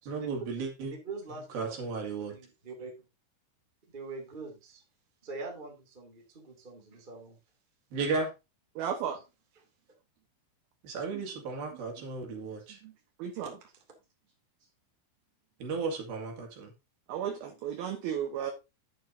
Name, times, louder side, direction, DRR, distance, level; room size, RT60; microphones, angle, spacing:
voice 1, 0.1-0.9 1.5-2.4 7.9-8.3 10.8-12.8 15.6-16.7, right 4 dB, 55° right, 1 dB, 3.7 m, -34 dB
voice 2, 1.0-1.9 2.3-2.9 3.9-4.8 5.2-7.4 9.5-9.6, right 3 dB, 25° right, 1 dB, 1.1 m, -43 dB
voice 3, 8.8-9.2 13.2-13.5 17.1-18.5, right 9 dB, 75° right, 5 dB, 2.3 m, -33 dB
11.0 x 8.9 x 2.8 m, 0.26 s
omnidirectional pair, 5.7 m